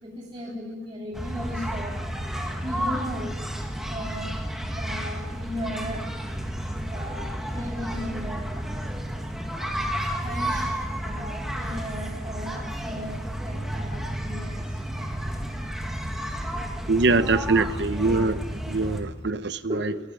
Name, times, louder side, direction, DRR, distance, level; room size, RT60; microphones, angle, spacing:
voice 1, 0.0-2.0 2.6-3.4 3.9-4.4 4.7-6.1 6.9-8.7 10.2-15.7 19.7-20.0, equal, 25° right, -4 dB, 2.9 m, -36 dB
sound 1, 1.1-19.0, equal, ahead, 2.0 m, -31 dB
voice 2, 16.9-19.9, right 3 dB, 65° right, 12 dB, 0.9 m, -23 dB
20.0 x 17.0 x 9.9 m, 1.2 s
head